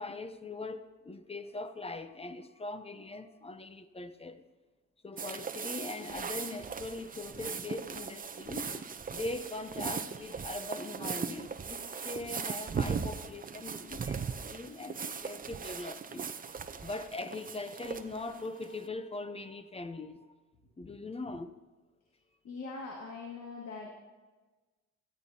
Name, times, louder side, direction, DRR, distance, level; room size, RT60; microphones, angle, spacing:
voice 1, 0.0-4.4 5.0-16.3 16.8-20.3 20.8-21.5, left 2 dB, 20° left, 0.7 m, -41 dB
sound 1, 5.2-18.8, right 6 dB, 30° right, 0.6 m, -39 dB
voice 2, 22.4-23.9, left 3 dB, 60° left, 2.1 m, -42 dB
17.0 x 13.0 x 2.8 m
cardioid pair, 90°, 30 cm